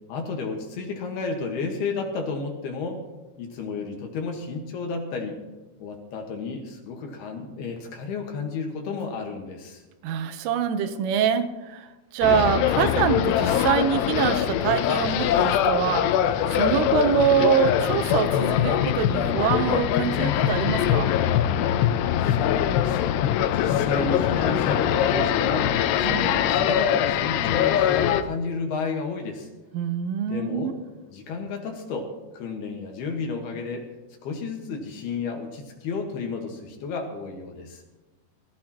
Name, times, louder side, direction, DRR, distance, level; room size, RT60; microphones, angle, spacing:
voice 1, 0.1-3.0 3.4-5.4 5.8-9.8 22.2-23.0 23.4-29.5 30.3-30.8 31.1-33.9 34.2-37.8, left 4 dB, 65° left, 2 dB, 3.0 m, -32 dB
voice 2, 10.0-16.2 16.5-21.1 26.0-26.5 29.7-30.7, right 8 dB, 90° right, 9 dB, 3.5 m, -25 dB
sound 1, 12.2-28.2, left 10 dB, 85° left, 2.5 m, -23 dB
sound 2, 13.6-14.0 14.6-15.6 16.2-17.2 17.8-18.2, equal, 10° right, 4.9 m, -44 dB
23.0 x 14.5 x 3.0 m, 1.1 s
omnidirectional pair, 5.5 m